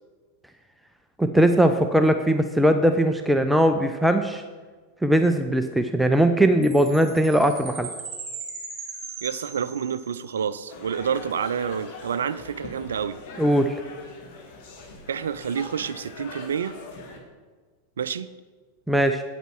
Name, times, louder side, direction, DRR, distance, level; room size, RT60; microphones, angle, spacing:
voice 1, 1.2-4.4 5.0-7.9 13.4-13.8 18.9-19.2, right 1 dB, 5° right, 7 dB, 0.4 m, -20 dB
Chime, 6.6-10.3, right 4 dB, 25° right, 1.8 m, -38 dB
voice 2, 9.2-13.2 15.1-16.7 18.0-18.3, right 7 dB, 65° right, 15 dB, 0.4 m, -28 dB
sound 1, 10.7-17.2, left 3 dB, 50° left, 1.6 m, -42 dB
8.7 x 8.0 x 4.5 m, 1.4 s
figure-of-eight pair, 90°, 0 cm